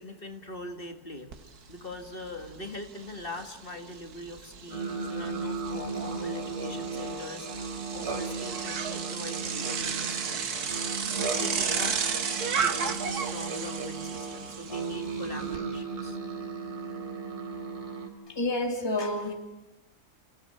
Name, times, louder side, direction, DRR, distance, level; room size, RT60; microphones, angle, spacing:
voice 1, 0.0-7.5 7.9-12.0 12.5-16.2, left 2 dB, 35° left, 6 dB, 2.0 m, -42 dB
Bicycle, 1.3-1.4 1.8-15.6, right 6 dB, 75° right, 1.9 m, -34 dB
sound 1, 4.7-18.1, right 4 dB, 45° right, 3.4 m, -36 dB
voice 2, 18.3-19.3, left 1 dB, 15° left, 4 dB, 2.4 m, -29 dB
28.5 x 17.5 x 8.8 m, 1.0 s
omnidirectional pair, 1.6 m